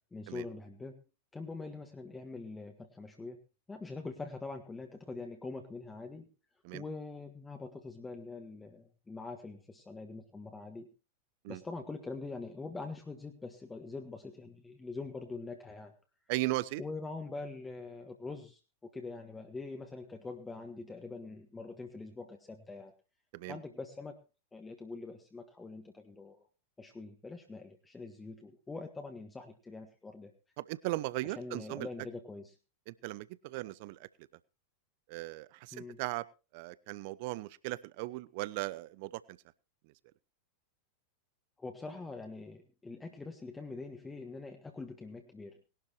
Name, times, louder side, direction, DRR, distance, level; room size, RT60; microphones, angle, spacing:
voice 1, 0.1-1.0 1.3-3.4 3.7-6.3 6.7-10.9 11.5-15.9 16.8-22.9 23.5-24.2 24.5-26.4 26.8-30.3 31.2-32.6 35.7-36.0 41.6-45.6, left 3 dB, 10° left, 4 dB, 1.7 m, -44 dB
voice 2, 16.3-16.8 23.3-23.6 30.6-31.9 32.9-34.1 35.1-36.2 36.5-39.4, right 20 dB, 50° right, 20 dB, 0.7 m, -37 dB
20.0 x 12.0 x 3.0 m, 0.32 s
figure-of-eight pair, 90°, 0 cm